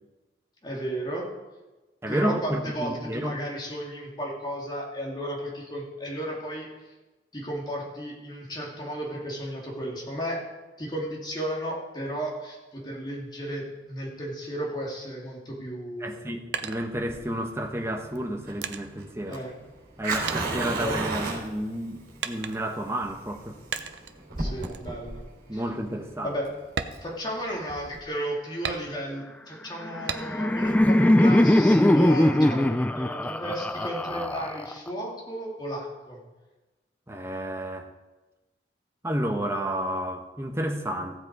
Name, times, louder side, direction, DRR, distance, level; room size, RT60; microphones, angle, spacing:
voice 1, 0.6-1.3 2.1-6.9 7.3-10.4 10.8-16.2 19.3-19.5 20.7-21.0 24.4-25.2 25.5-25.6 26.2-26.5 27.0-36.2, equal, 25° left, -2 dB, 2.5 m, -34 dB
voice 2, 2.0-3.3 16.0-19.4 20.0-23.6 25.5-26.4 37.1-37.9 39.0-41.2, right 1 dB, 15° right, 3 dB, 1.0 m, -31 dB
sound 1, 16.0-17.5 18.1-20.0 20.3-21.4 22.2-22.9 23.7-24.2 24.6-24.9 25.3-25.4 25.9-26.0 26.6-27.9 28.6-29.3 30.1-30.6 31.0-31.9, right 6 dB, 75° right, 0.7 m, -36 dB
Fire, 16.9-28.0, right 3 dB, 55° right, 3.7 m, -35 dB
Laughter, 29.8-34.9, left 1 dB, 10° left, 0.3 m, -21 dB
15.0 x 7.9 x 4.7 m, 1.2 s
head